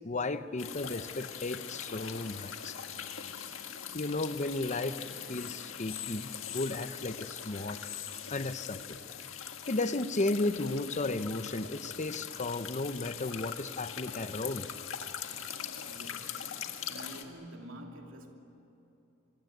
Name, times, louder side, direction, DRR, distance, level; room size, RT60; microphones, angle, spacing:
voice 1, 0.0-2.8 3.9-5.0 5.3-7.8 8.3-9.0 9.7-14.7, left 2 dB, 35° left, 0.8 m, -34 dB
sound 1, 0.6-17.2, left 8 dB, 80° left, 1.8 m, -42 dB
voice 2, 15.8-18.3, equal, 70° right, 2.8 m, -48 dB
26.5 x 23.5 x 9.2 m
head